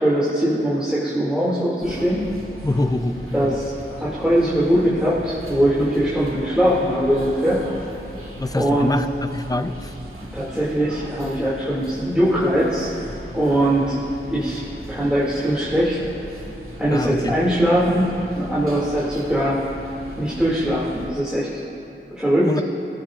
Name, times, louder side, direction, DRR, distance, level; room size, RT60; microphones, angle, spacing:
voice 1, 0.0-2.2 3.3-7.6 8.5-8.9 10.3-12.9 13.3-14.0 14.3-14.6 14.9-16.0 16.8-19.6 20.2-21.6 22.2-22.5, equal, 5° right, -9 dB, 2.5 m, -21 dB
sound 1, 1.8-21.1, equal, 90° right, 2.0 m, -38 dB
voice 2, 2.6-3.6 8.4-9.9 16.9-17.4 22.4-22.6, left 2 dB, 15° left, 10 dB, 0.5 m, -25 dB
23.5 x 15.0 x 2.5 m, 3.0 s
wide cardioid pair, 70°, 21 cm